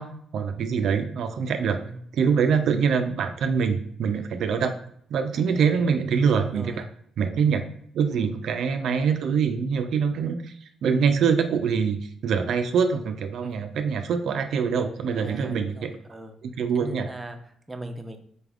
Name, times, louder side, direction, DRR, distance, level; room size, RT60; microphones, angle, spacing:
voice 1, 0.0-1.8 2.1-4.7 5.1-6.7 7.2-7.7 7.9-15.9 16.4-17.1, right 6 dB, 70° right, 7 dB, 0.3 m, -24 dB
voice 2, 1.7-2.0 5.3-5.8 6.4-6.9 8.1-8.4 13.4-13.7 15.1-16.4 16.7-18.2, right 1 dB, 15° right, 5 dB, 0.5 m, -40 dB
4.1 x 3.4 x 2.4 m, 0.66 s
cardioid pair, 90°, 0 cm